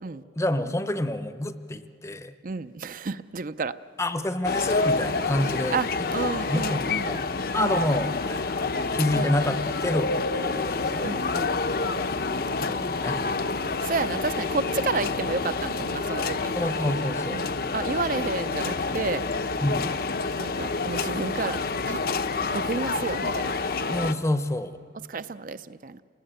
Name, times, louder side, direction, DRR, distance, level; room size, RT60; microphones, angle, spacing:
voice 1, 0.4-2.3 4.0-5.8 6.5-7.2 7.5-11.1 12.6-13.2 16.5-17.4 19.6-20.0 23.9-24.7, left 1 dB, 15° left, 11 dB, 0.7 m, -28 dB
voice 2, 2.4-3.7 5.7-7.2 7.6-7.8 9.1-9.6 11.0-11.6 13.8-16.5 17.3-19.3 20.4-21.6 21.9-22.0 22.5-23.5 25.1-26.0, right 4 dB, 50° right, 13 dB, 0.5 m, -31 dB
sound 1, 4.4-24.1, left 3 dB, 55° left, 0.9 m, -28 dB
29.5 x 19.5 x 8.9 m, 2.6 s
head